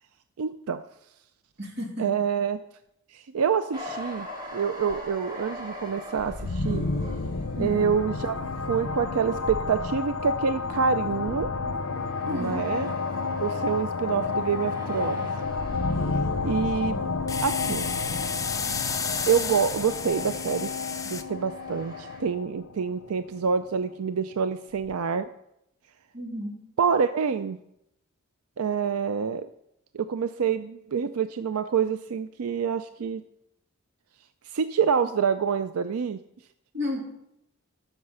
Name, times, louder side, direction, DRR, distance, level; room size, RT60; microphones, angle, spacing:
voice 1, 0.4-0.8 2.0-2.6 3.1-4.3 4.5-6.8 7.6-8.4 8.7-11.5 12.2-12.9 13.4-15.3 16.1-17.0 17.4-17.9 19.3-20.7 21.1-25.3 26.8-27.6 28.6-29.5 29.9-33.2 34.4-36.2, right 6 dB, 90° right, 11 dB, 0.4 m, -27 dB
voice 2, 1.6-2.1 7.6-8.0 12.3-12.6 26.1-26.6 36.7-37.1, left 1 dB, 50° right, 0 dB, 2.6 m, -32 dB
sound 1, 3.7-19.3 19.6-22.2, left 1 dB, 20° right, 2.2 m, -43 dB
sound 2, 6.2-23.8, left 4 dB, 85° left, 0.8 m, -31 dB
sound 3, 17.3-21.2, left 6 dB, 15° left, 0.5 m, -32 dB
12.5 x 6.6 x 5.5 m, 0.81 s
head